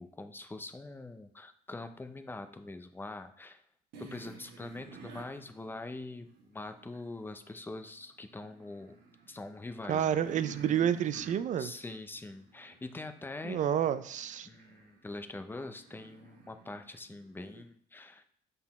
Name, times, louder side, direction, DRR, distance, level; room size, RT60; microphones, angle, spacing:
voice 1, 0.0-3.6 4.0-9.0 9.3-10.2 11.6-13.9 14.4-18.2, left 2 dB, 10° left, 8 dB, 0.6 m, -44 dB
sound 1, 3.9-7.2 7.6-17.6, right 4 dB, 75° right, 1.3 m, -53 dB
voice 2, 9.9-11.7 13.4-14.5, right 9 dB, 45° right, 13 dB, 0.5 m, -29 dB
6.0 x 4.0 x 4.3 m, 0.64 s
cardioid pair, 110°, 17 cm